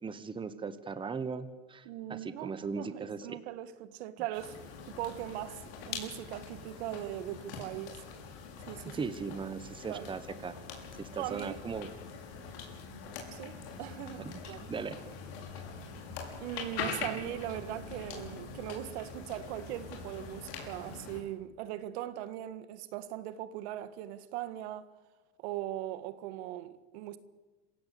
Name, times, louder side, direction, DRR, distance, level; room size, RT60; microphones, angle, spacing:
voice 1, 0.0-3.4 8.8-10.6 11.0-11.9 14.2-15.0, right 5 dB, 15° right, 1.2 m, -38 dB
voice 2, 1.8-4.5 4.9-8.0 8.7-9.1 9.9-10.1 11.1-11.6 13.3-14.6 16.4-24.9 25.4-27.2, right 13 dB, 75° right, 1.7 m, -40 dB
sound 1, 4.3-21.2, left 5 dB, 70° left, 6.2 m, -43 dB
27.0 x 16.0 x 8.5 m
supercardioid pair, 135°, 33 cm